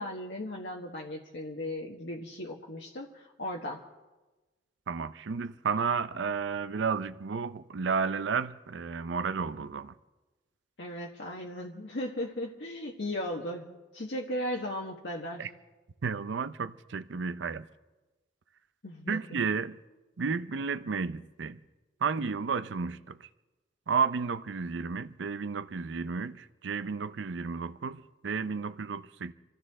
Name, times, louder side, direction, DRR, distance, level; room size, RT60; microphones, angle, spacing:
voice 1, 0.0-3.8 10.8-13.7 13.9-15.4 18.8-19.4, left 1 dB, 75° left, 1.5 m, -37 dB
voice 2, 4.9-9.9 15.4-15.5 16.0-17.7 19.1-19.8 20.2-21.6 22.0-23.2 23.9-29.3, right 5 dB, 85° right, 0.5 m, -32 dB
27.5 x 14.5 x 3.6 m
head